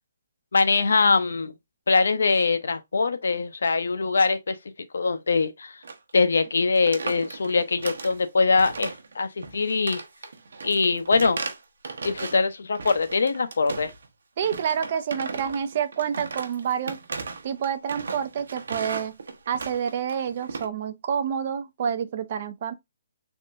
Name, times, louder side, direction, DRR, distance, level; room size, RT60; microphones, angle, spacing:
voice 1, 0.5-1.5 1.9-4.6 4.9-5.7 6.1-10.0 10.6-11.4 12.0-13.9, left 4 dB, 75° left, 0.6 m, -22 dB
sound 1, 5.8-6.1 6.3-6.5 6.8-8.2 8.6-9.1 9.4-12.4 12.7-14.1 14.4-20.7, right 4 dB, 70° right, 0.9 m, -36 dB
voice 2, 14.4-17.0 17.4-19.2 19.5-22.7, right 8 dB, 30° right, 0.4 m, -28 dB
3.6 x 3.2 x 2.5 m
hypercardioid pair, 175°, 0 cm